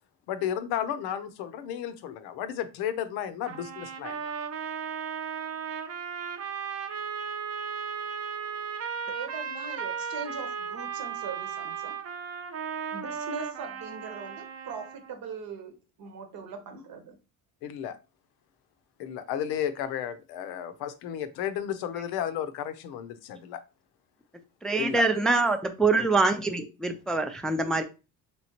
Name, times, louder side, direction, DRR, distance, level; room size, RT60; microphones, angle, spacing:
voice 1, 0.3-4.2 17.6-18.0 19.0-23.6 24.8-25.0 26.0-26.1, left 9 dB, 80° left, 0.6 m, -33 dB
sound 1, 3.5-15.1, right 7 dB, 40° right, 0.6 m, -35 dB
voice 2, 9.1-12.0 12.9-15.7 16.0-17.2, right 5 dB, 65° right, 1.0 m, -40 dB
voice 3, 24.6-27.8, right 3 dB, ahead, 0.3 m, -25 dB
3.3 x 3.0 x 2.7 m
supercardioid pair, 80°, 38 cm